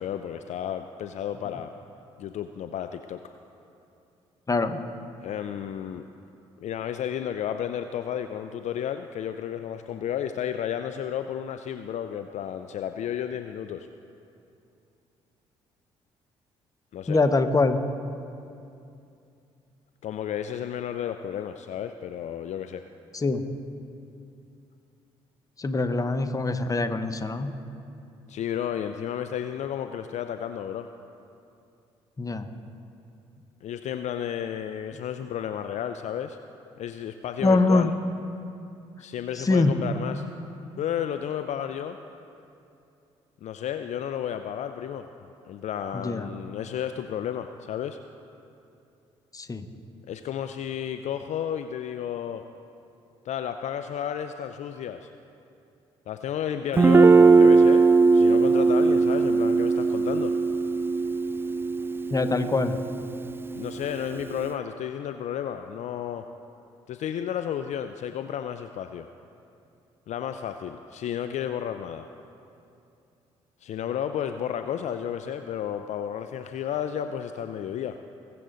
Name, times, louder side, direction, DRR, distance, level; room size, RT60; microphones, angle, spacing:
voice 1, 0.0-1.7 2.2-3.2 5.2-6.1 6.6-13.9 16.9-17.2 20.0-22.9 28.3-30.9 33.6-36.4 36.8-37.9 39.0-40.3 40.8-42.0 43.4-45.1 45.5-48.0 50.1-52.4 53.2-55.1 56.1-60.3 63.5-66.3 66.9-69.1 70.1-72.1 73.6-78.0, left 9 dB, 55° left, 8 dB, 0.5 m, -32 dB
voice 2, 4.5-4.8 17.1-17.8 23.1-23.4 25.6-27.5 32.2-32.5 37.4-37.9 39.3-39.8 45.9-46.3 49.3-49.7 62.1-62.8, left 3 dB, 25° left, 9 dB, 1.0 m, -24 dB
Guitar, 56.8-64.4, right 4 dB, 15° right, 0.4 m, -20 dB
21.0 x 7.7 x 3.9 m, 2.6 s
hypercardioid pair, 50°, 14 cm